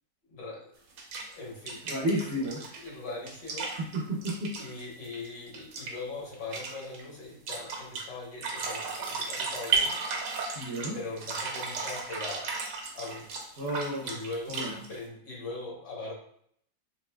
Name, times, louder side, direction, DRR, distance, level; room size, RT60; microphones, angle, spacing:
voice 1, 0.3-0.7 1.3-2.3 2.8-3.7 4.6-10.0 10.9-12.5 12.9-13.3 14.0-14.6 14.9-16.1, left 3 dB, 70° left, -3 dB, 1.8 m, -40 dB
sound 1, 1.0-1.3 1.7-5.3 5.5-5.9 6.3-7.0 7.5-8.0 8.4-10.9 11.2-15.0, right 4 dB, 75° right, 1.4 m, -34 dB
voice 2, 1.9-2.6 3.8-4.5 10.6-11.0 13.6-14.2 14.5-14.7, right 1 dB, 60° right, -5 dB, 0.7 m, -31 dB
6.3 x 2.6 x 2.2 m, 0.67 s
omnidirectional pair, 2.0 m